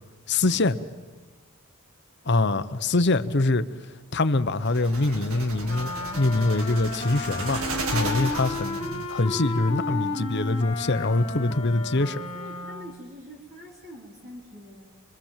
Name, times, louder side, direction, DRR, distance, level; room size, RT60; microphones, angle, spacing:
voice 1, 0.3-0.8 2.2-3.6 4.1-7.6 7.9-12.2, left 2 dB, 55° left, 0.9 m, -24 dB
sound 1, 4.6-9.2, right 3 dB, 80° right, 2.1 m, -35 dB
Wind instrument woodwind instrument, 5.6-13.0, left 3 dB, 30° left, 2.8 m, -33 dB
voice 2, 12.3-14.9, left 1 dB, 45° right, 3.5 m, -44 dB
25.5 x 24.5 x 7.5 m
head